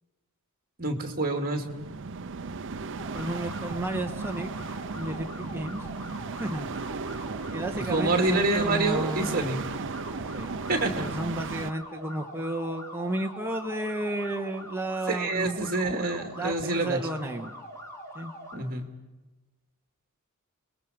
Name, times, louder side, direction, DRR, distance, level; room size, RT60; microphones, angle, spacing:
voice 1, 0.8-1.7 7.8-9.6 10.7-11.1 15.1-17.0 18.5-18.9, right 2 dB, 40° right, 4 dB, 2.6 m, -27 dB
sound 1, 1.6-11.7, right 4 dB, 60° right, 0.7 m, -35 dB
voice 2, 2.9-4.5 4.9-5.9 6.4-6.7 7.5-9.4 10.3-10.5 10.8-15.6 16.3-17.6 18.1-18.3, right 1 dB, 10° right, 3 dB, 1.6 m, -32 dB
sound 2, 3.0-18.6, equal, 15° left, 4.5 m, -43 dB
29.5 x 21.0 x 5.2 m, 1.1 s
head